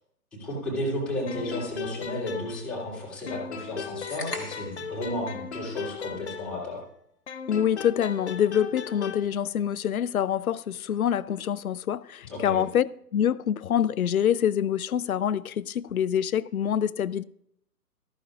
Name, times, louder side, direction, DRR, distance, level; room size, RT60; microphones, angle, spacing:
voice 1, 0.4-6.8 12.3-12.6, left 1 dB, ahead, 3.4 m, -33 dB
sound 1, 1.3-3.0 3.3-6.9 7.3-9.3, left 6 dB, 45° left, 0.9 m, -37 dB
sound 2, 4.1-4.9, left 2 dB, 85° left, 2.2 m, -37 dB
voice 2, 7.5-17.2, left 9 dB, 65° left, 0.5 m, -26 dB
14.0 x 14.0 x 2.5 m
figure-of-eight pair, 130°, 47 cm